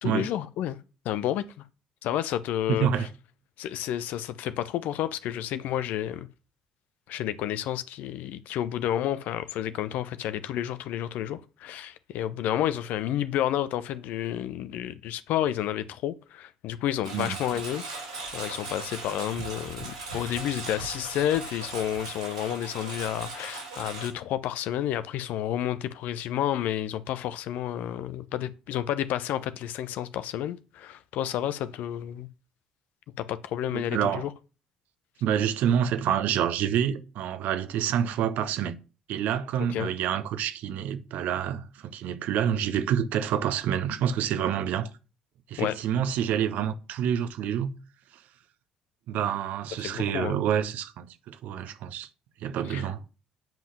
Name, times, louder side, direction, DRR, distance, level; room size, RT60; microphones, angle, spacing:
voice 1, 0.0-0.8 1.0-1.6 2.0-3.1 3.6-6.3 7.1-17.8 18.3-32.3 33.2-34.3 39.7-39.9 45.6-45.8 49.8-50.4 52.6-52.9, left 11 dB, 55° left, 0.8 m, -30 dB
voice 2, 2.7-3.1 17.1-17.4 33.7-34.3 35.2-38.8 39.1-44.9 45.5-47.7 49.1-52.1 52.4-53.0, right 9 dB, 55° right, 1.1 m, -27 dB
Engine, 17.0-24.1, right 3 dB, 85° right, 3.9 m, -38 dB
9.1 x 5.7 x 7.6 m
figure-of-eight pair, 50°, 3 cm